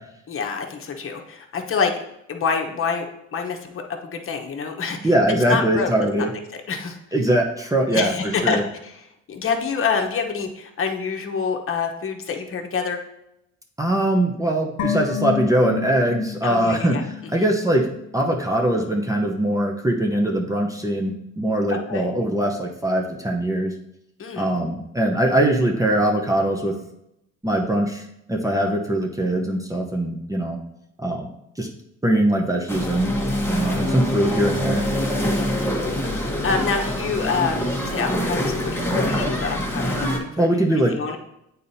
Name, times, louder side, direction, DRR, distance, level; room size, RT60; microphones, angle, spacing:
voice 1, 0.3-1.9 2.3-3.1 3.3-5.1 5.5-5.9 6.2-6.3 6.5-7.0 7.9-13.1 16.4-17.5 21.7-22.1 24.2-24.5 35.3-35.7 36.4-41.2, left 5 dB, 45° left, 3 dB, 1.0 m, -27 dB
voice 2, 5.0-6.3 7.1-8.1 8.4-8.6 13.8-17.0 17.3-17.9 18.1-23.7 24.4-26.7 27.4-30.6 31.0-31.3 31.6-31.7 32.0-33.1 33.5-34.8 40.4-40.9, right 1 dB, 10° right, 0 dB, 0.8 m, -21 dB
sound 1, 14.8-18.1 18.4-18.5, left 9 dB, 80° left, 0.8 m, -30 dB
sound 2, 32.7-40.2, left 1 dB, 5° left, 1.2 m, -25 dB
8.4 x 4.1 x 2.8 m, 0.82 s
cardioid pair, 90°, 30 cm